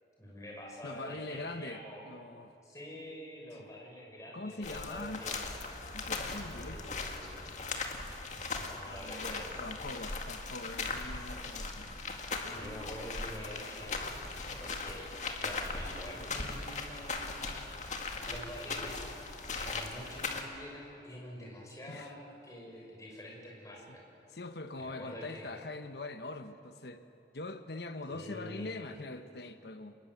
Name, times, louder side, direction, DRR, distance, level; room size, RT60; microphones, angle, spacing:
voice 1, 0.2-2.0 2.6-5.4 6.6-7.4 8.5-9.5 12.5-14.0 14.6-15.1 15.4-17.6 18.3-19.0 19.5-24.0 24.8-25.5 28.1-28.9, equal, 20° left, -2 dB, 6.4 m, -46 dB
voice 2, 0.8-2.5 3.6-3.7 4.3-5.2 5.9-6.8 8.8-11.9 12.4-12.9 21.9-22.1 23.9-24.0 24.3-27.0 27.3-30.0, left 2 dB, 65° left, 9 dB, 1.0 m, -43 dB
sound 1, 4.6-20.4, left 3 dB, 40° left, 2.1 m, -39 dB
26.5 x 21.0 x 7.9 m, 2.8 s
head